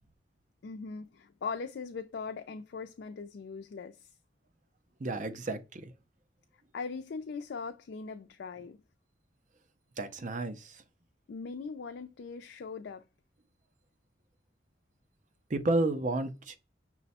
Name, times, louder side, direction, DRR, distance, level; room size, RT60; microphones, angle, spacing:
voice 1, 0.6-4.1 6.7-8.8 11.3-13.0, left 5 dB, 65° left, 0.4 m, -40 dB
voice 2, 5.0-5.8 10.0-10.6 15.5-16.6, right 2 dB, 40° right, 0.5 m, -31 dB
5.8 x 2.1 x 4.1 m
head